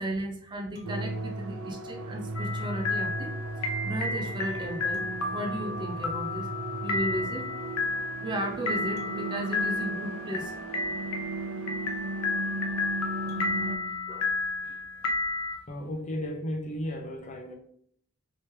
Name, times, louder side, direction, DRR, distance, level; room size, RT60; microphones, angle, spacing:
voice 1, 0.0-6.5 6.8-7.5 8.2-10.6 14.1-14.8, right 1 dB, 20° right, 0.4 m, -35 dB
sound 1, 0.7-2.4 4.9-7.0 9.0-11.1 13.3-15.3, right 4 dB, 50° right, 0.8 m, -49 dB
sound 2, 0.8-13.8, right 2 dB, 80° right, 0.4 m, -36 dB
sound 3, 2.3-15.5, left 3 dB, 85° left, 0.6 m, -32 dB
voice 2, 15.7-17.6, equal, 35° left, 0.5 m, -34 dB
3.2 x 3.0 x 3.2 m
head